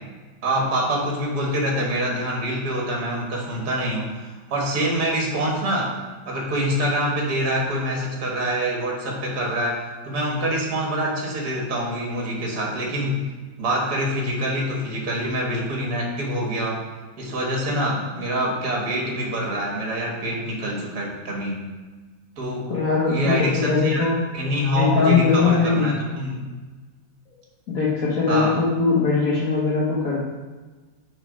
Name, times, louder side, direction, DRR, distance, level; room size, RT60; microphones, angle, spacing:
voice 1, 0.4-5.9 6.3-13.2 13.6-16.8 17.2-21.6 22.4-22.7 23.1-24.1 24.3-26.4 28.3-28.6, equal, 60° right, -2 dB, 2.1 m, -25 dB
voice 2, 22.7-24.2 24.7-25.9 27.3-27.4 27.7-30.3, left 4 dB, 55° left, -5 dB, 1.5 m, -21 dB
6.6 x 5.3 x 5.3 m, 1.3 s
omnidirectional pair, 1.9 m